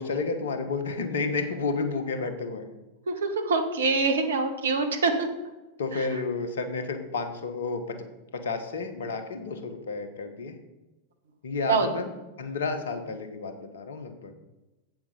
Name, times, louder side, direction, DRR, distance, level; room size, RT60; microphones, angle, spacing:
voice 1, 0.0-2.6 5.8-8.0 8.3-10.5 11.4-12.1 12.4-14.3, left 4 dB, 65° left, 8 dB, 1.3 m, -31 dB
voice 2, 3.1-5.3 11.7-11.9, right 4 dB, 65° right, 6 dB, 1.4 m, -24 dB
8.5 x 7.7 x 5.4 m, 1.0 s
figure-of-eight pair, 90°, 0 cm